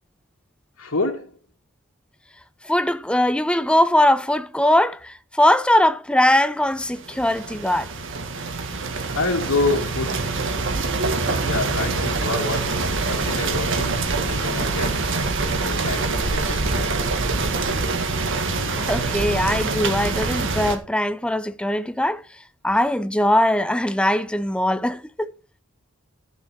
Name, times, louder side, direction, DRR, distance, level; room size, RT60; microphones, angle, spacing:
voice 1, 0.8-1.4 9.1-10.2 11.3-15.1 15.6-17.3, left 3 dB, 85° left, 2.4 m, -28 dB
voice 2, 2.6-7.9 18.8-22.2 22.6-25.3, left 1 dB, 5° left, 0.6 m, -21 dB
sound 1, 6.8-20.8, right 3 dB, 65° right, 1.8 m, -25 dB
12.0 x 7.3 x 4.6 m
head